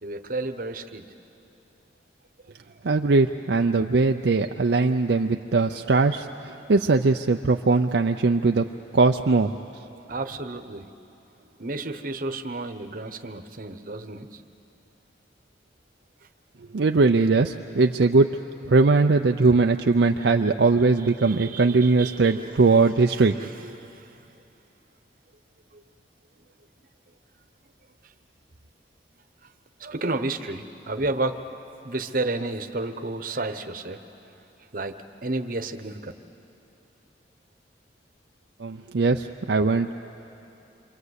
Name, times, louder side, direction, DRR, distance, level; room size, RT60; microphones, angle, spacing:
voice 1, 0.0-1.1 2.7-2.8 5.8-5.9 10.1-10.9 11.6-14.4 21.0-24.2 25.7-25.8 28.0-28.1 29.4-29.5 29.8-31.4 31.8-34.0 34.7-36.1, right 2 dB, 50° right, 8 dB, 1.0 m, -32 dB
voice 2, 2.8-8.7 8.9-9.5 16.7-18.4 18.7-23.3 23.6-23.7 38.6-39.9, right 3 dB, 70° right, 4 dB, 0.5 m, -20 dB
28.0 x 24.5 x 8.2 m, 2.9 s
head